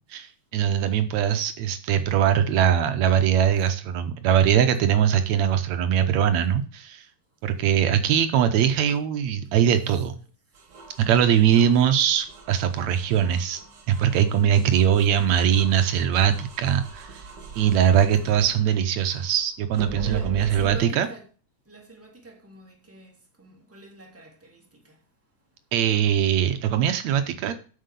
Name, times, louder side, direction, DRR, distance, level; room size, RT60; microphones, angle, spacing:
voice 1, 0.1-7.1 7.4-10.1 11.0-13.6 13.9-17.2 17.6-21.1 25.7-27.5, right 9 dB, 70° right, 2.0 m, -21 dB
voice 2, 10.5-11.0 15.5-15.7 18.2-18.3 18.7-18.9 20.0-21.3 21.6-25.0, right 3 dB, 5° right, 2.2 m, -43 dB
sound 1, 10.5-19.3 19.7-20.8, right 4 dB, 45° right, 1.7 m, -42 dB
7.7 x 6.6 x 6.7 m
omnidirectional pair, 3.5 m